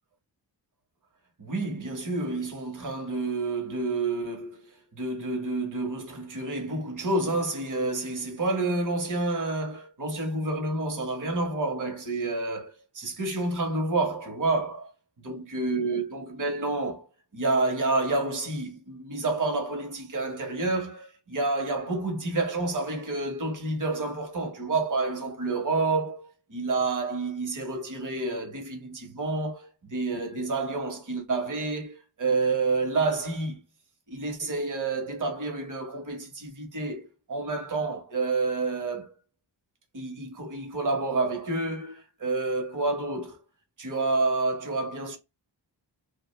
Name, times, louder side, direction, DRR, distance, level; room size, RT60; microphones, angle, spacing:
voice 1, 1.4-14.9 15.2-17.1 17.3-33.6 34.1-39.1 39.9-43.4 43.8-45.2, right 3 dB, 45° right, 0.9 m, -29 dB
2.4 x 2.2 x 3.0 m
wide cardioid pair, 120°, 44 cm